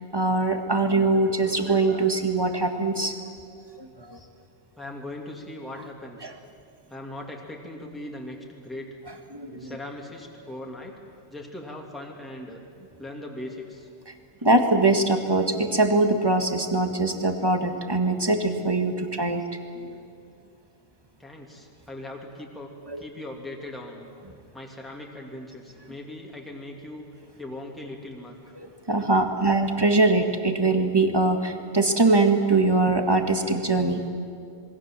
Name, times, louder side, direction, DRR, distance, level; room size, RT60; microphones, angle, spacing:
voice 1, 0.1-3.1 3.7-4.2 6.2-6.3 9.3-9.8 14.4-19.4 22.9-23.0 28.6-34.0, right 2 dB, 20° right, 6 dB, 1.8 m, -22 dB
voice 2, 4.8-6.3 6.9-9.0 9.6-10.9 11.3-12.6 13.0-13.9 14.4-14.6 21.2-24.1 24.5-27.1 27.4-28.4, left 1 dB, ahead, 0 dB, 2.6 m, -39 dB
27.0 x 21.5 x 7.5 m, 2.3 s
omnidirectional pair, 1.2 m